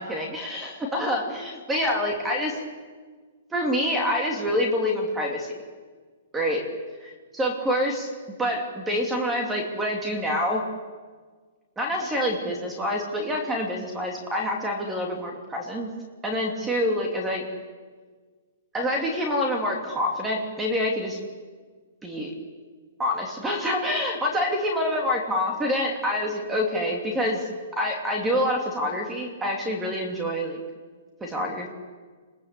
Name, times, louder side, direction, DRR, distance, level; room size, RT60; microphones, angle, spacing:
voice 1, 0.0-2.6 3.5-5.5 6.3-6.6 7.3-8.1 8.4-10.6 11.8-15.9 16.2-17.4 18.7-21.2 22.0-22.3 23.0-30.6 31.2-31.7, left 1 dB, 10° right, 1 dB, 2.8 m, -26 dB
29.5 x 21.5 x 8.3 m, 1.5 s
hypercardioid pair, 165°, 0 cm